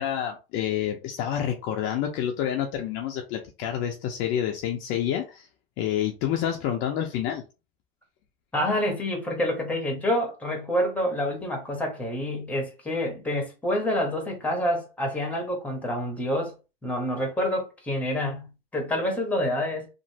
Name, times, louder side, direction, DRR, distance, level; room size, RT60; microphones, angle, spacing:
voice 1, 0.0-5.5 5.8-7.4, left 10 dB, 40° left, 0.5 m, -28 dB
voice 2, 8.5-16.6 16.8-19.9, left 1 dB, 5° left, 0.9 m, -27 dB
2.9 x 2.5 x 2.7 m
supercardioid pair, 130°, 31 cm